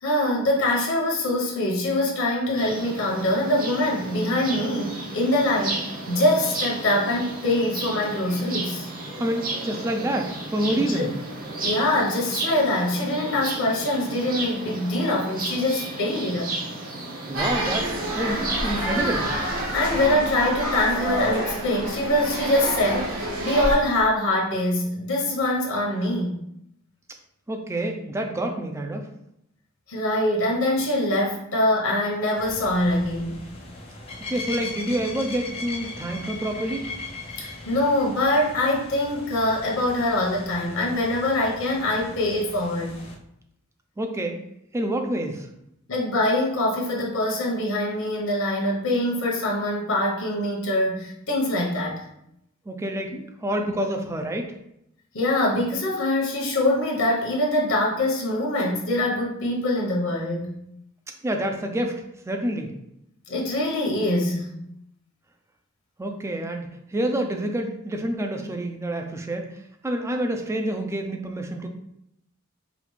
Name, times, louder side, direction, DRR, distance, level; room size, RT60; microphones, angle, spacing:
voice 1, 0.0-8.9 10.9-11.1 11.6-16.5 19.7-26.4 29.9-33.4 37.4-42.9 45.9-52.1 55.1-60.5 63.3-64.5, left 1 dB, 75° left, -2 dB, 1.1 m, -24 dB
sound 1, 2.6-19.7, right 2 dB, 40° right, 0.8 m, -34 dB
voice 2, 9.2-11.1 17.3-19.3 27.5-29.1 34.3-36.9 44.0-44.4 44.7-45.5 52.7-54.5 61.2-62.7 66.0-71.7, right 1 dB, 15° right, 4 dB, 0.4 m, -28 dB
sound 2, 17.3-23.8, right 1 dB, 80° right, 1.1 m, -28 dB
sound 3, 32.4-43.1, left 2 dB, 30° left, 0.7 m, -39 dB
5.0 x 2.4 x 3.2 m, 0.78 s
head